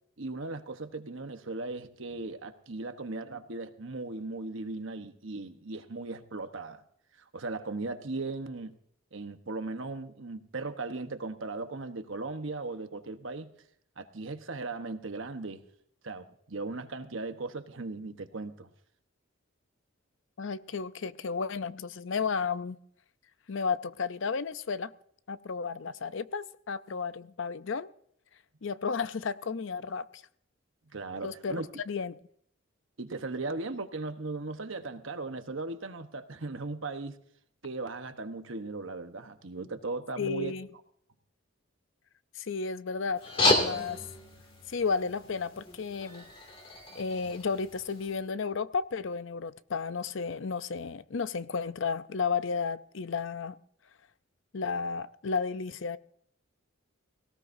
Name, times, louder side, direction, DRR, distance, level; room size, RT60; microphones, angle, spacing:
voice 1, 0.2-6.8 7.3-8.7 9.1-13.5 14.0-15.6 16.0-18.7 30.9-31.6 33.0-37.2 37.6-40.5, right 3 dB, 65° right, 1.1 m, -37 dB
voice 2, 20.4-22.8 23.5-24.9 25.3-27.9 28.6-30.1 31.2-31.6 31.9-32.2 40.2-40.7 42.4-44.0 44.7-46.3 46.9-53.6 54.5-56.0, left 5 dB, 65° left, 0.6 m, -33 dB
sound 1, 43.2-48.2, left 2 dB, 25° left, 2.3 m, -32 dB
18.0 x 18.0 x 2.7 m
head